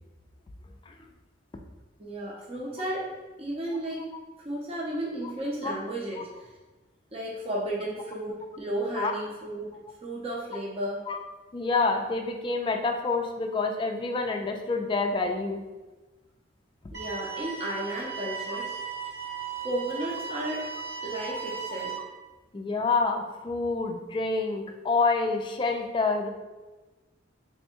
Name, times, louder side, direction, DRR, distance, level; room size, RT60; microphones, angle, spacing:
voice 1, 2.0-3.1 3.4-4.1 4.4-6.5 7.1-9.7 10.0-11.0 16.9-18.8 19.6-20.7 21.0-22.0, right 1 dB, 30° right, -4 dB, 0.6 m, -33 dB
voice 2, 11.5-15.6 18.5-18.6 21.3-21.4 22.5-26.3, left 3 dB, 25° left, 3 dB, 0.3 m, -27 dB
sound 1, 16.9-22.0, right 6 dB, 55° right, 0.9 m, -36 dB
3.5 x 2.2 x 4.3 m, 1.2 s
head